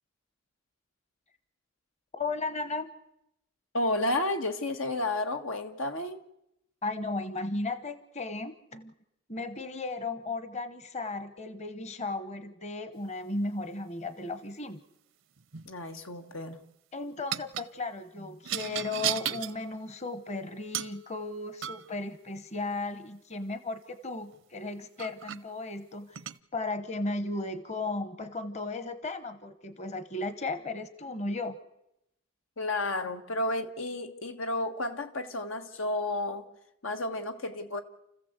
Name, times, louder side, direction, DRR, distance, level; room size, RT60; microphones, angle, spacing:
voice 1, 2.1-3.0 6.8-8.9 9.3-14.8 16.9-26.2 26.5-31.6, left 2 dB, 35° left, 12 dB, 1.1 m, -35 dB
voice 2, 3.7-6.2 15.7-16.6 32.6-36.5 36.8-37.8, left 2 dB, 85° left, 6 dB, 1.9 m, -32 dB
sound 1, 15.4-15.7 17.3-17.7 18.4-19.6 20.7-21.0 21.6-21.9 24.3-24.4 25.0-25.4 26.1-26.4, right 11 dB, 70° right, 0.7 m, -34 dB
29.0 x 15.0 x 8.1 m, 0.85 s
head